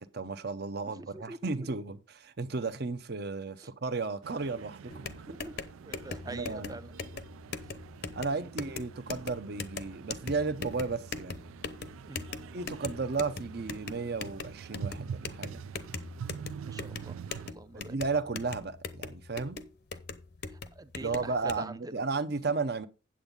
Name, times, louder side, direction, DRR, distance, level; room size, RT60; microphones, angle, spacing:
voice 1, 0.0-5.2 6.3-6.8 8.1-11.4 12.5-15.6 17.7-19.6 21.0-22.9, right 4 dB, 50° right, 0.7 m, -34 dB
voice 2, 0.8-1.6 3.6-3.7 5.3-5.5 5.8-6.9 8.2-8.4 12.1-12.2 16.6-17.2 17.5-18.0 20.5-22.0 22.4-22.5, right 2 dB, 20° right, 0.5 m, -45 dB
sound 1, 4.2-17.5, right 7 dB, 85° right, 0.3 m, -45 dB
sound 2, 4.9-21.6, left 4 dB, 50° left, 0.7 m, -41 dB
8.7 x 8.0 x 3.8 m
head